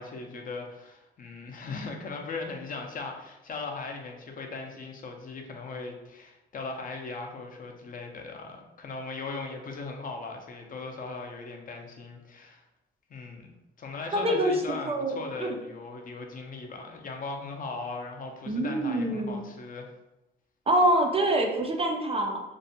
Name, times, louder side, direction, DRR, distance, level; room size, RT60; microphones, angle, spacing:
voice 1, 0.0-12.6 13.1-19.9, left 3 dB, 45° left, 2 dB, 0.5 m, -38 dB
voice 2, 14.1-15.6 18.5-19.4 20.7-22.4, right 1 dB, 30° right, 2 dB, 0.3 m, -26 dB
2.5 x 2.1 x 2.6 m, 0.95 s
cardioid pair, 90°, 20 cm